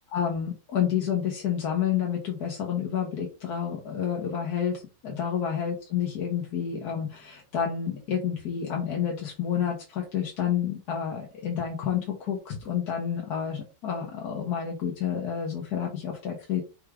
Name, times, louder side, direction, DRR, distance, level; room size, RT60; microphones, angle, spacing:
voice 1, 0.1-16.6, left 8 dB, 65° left, 0 dB, 1.4 m, -29 dB
4.7 x 3.2 x 3.4 m, 0.32 s
omnidirectional pair, 1.9 m